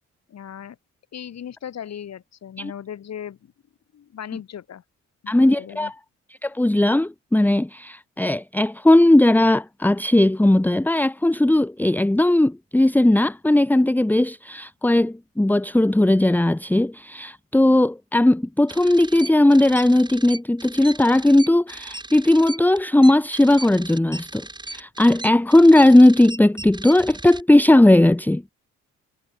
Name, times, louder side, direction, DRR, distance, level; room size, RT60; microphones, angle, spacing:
voice 1, 0.3-0.8 1.1-3.5 3.9-4.8 5.2-5.9, left 9 dB, 60° left, 5.7 m, -37 dB
voice 2, 5.3-5.9 6.4-28.4, left 1 dB, 5° left, 1.2 m, -17 dB
sound 1, 18.7-27.4, right 2 dB, 15° right, 5.6 m, -37 dB
cardioid pair, 90°, 30 cm